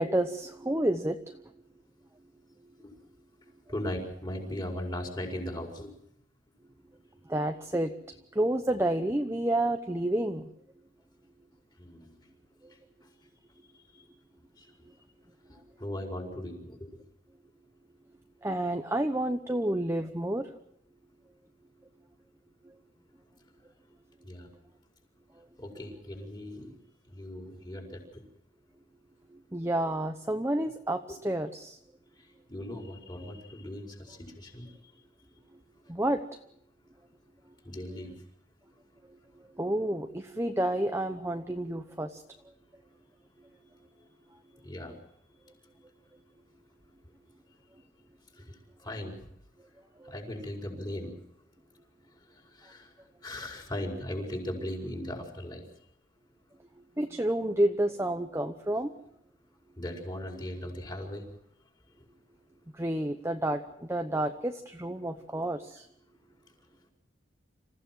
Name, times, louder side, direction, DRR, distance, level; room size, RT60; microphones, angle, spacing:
voice 1, 0.0-1.4 7.3-7.9 8.3-10.4 18.4-20.5 29.5-31.8 35.9-36.2 39.6-42.2 50.0-50.1 57.0-58.9 62.7-65.8, right 1 dB, 15° right, 6 dB, 0.9 m, -29 dB
voice 2, 3.7-5.9 11.8-12.3 13.9-14.0 14.6-14.7 15.8-17.0 24.2-24.5 25.6-26.8 27.1-28.3 32.2-34.8 37.6-38.1 44.6-44.9 48.4-49.2 50.0-51.1 52.3-52.9 53.2-55.6 59.8-61.2, left 1 dB, 25° left, 1 dB, 4.9 m, -38 dB
27.0 x 15.5 x 7.7 m, 0.76 s
head